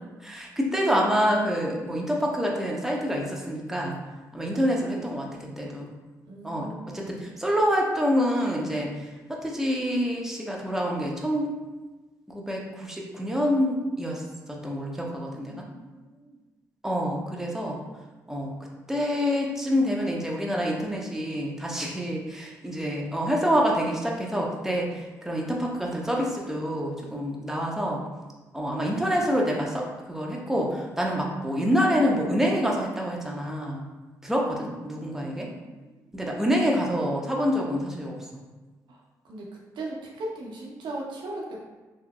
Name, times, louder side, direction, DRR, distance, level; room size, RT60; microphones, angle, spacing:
voice 1, 0.2-4.0 4.3-5.3 5.6-5.9 6.4-6.7 6.9-8.9 9.3-11.6 12.3-14.2 14.5-15.6 16.8-17.8 18.3-18.5 18.9-28.0 28.5-33.8 34.2-35.5 36.1-38.4, equal, 5° right, -2 dB, 0.8 m, -27 dB
voice 2, 6.2-7.2 15.4-16.4 35.3-36.2 38.9-41.7, right 2 dB, 70° right, -2 dB, 0.8 m, -39 dB
3.8 x 2.7 x 2.3 m, 1.2 s
supercardioid pair, 55°, 8 cm